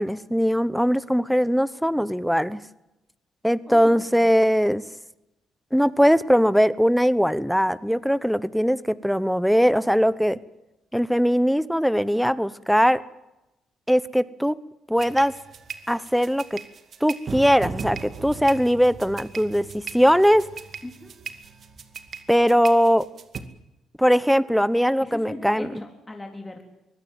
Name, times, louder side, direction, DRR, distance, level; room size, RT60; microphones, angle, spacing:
voice 1, 0.0-2.6 3.4-4.8 5.7-10.4 10.9-13.0 13.9-14.6 14.9-15.3 15.9-16.6 17.0-20.5 22.3-23.1 24.0-25.8, equal, ahead, 18 dB, 1.0 m, -20 dB
voice 2, 3.6-4.3 20.8-21.2 25.0-26.6, left 2 dB, 15° left, 4 dB, 3.6 m, -38 dB
sound 1, 15.0-23.4, right 5 dB, 50° right, 2.3 m, -37 dB
23.5 x 17.5 x 9.3 m, 0.93 s
cardioid pair, 90°, 0 cm